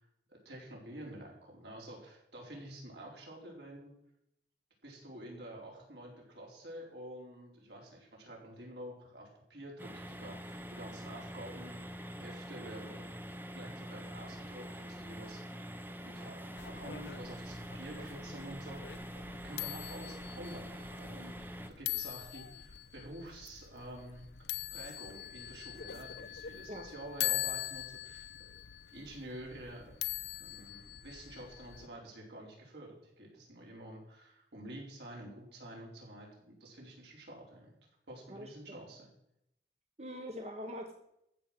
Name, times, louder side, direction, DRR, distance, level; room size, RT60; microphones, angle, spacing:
voice 1, 0.3-3.9 4.8-11.8 12.2-13.0 13.5-15.7 16.0-24.3 24.7-28.5 28.9-30.0 30.4-37.7 38.1-39.1, right 1 dB, 70° right, -2 dB, 4.7 m, -49 dB
sound 1, 9.8-21.7, equal, 10° right, 0.8 m, -45 dB
sound 2, 16.6-31.9, left 14 dB, 70° left, 0.7 m, -42 dB
voice 2, 40.0-40.9, equal, 35° right, 4 dB, 1.2 m, -42 dB
14.5 x 6.3 x 7.6 m, 0.78 s
head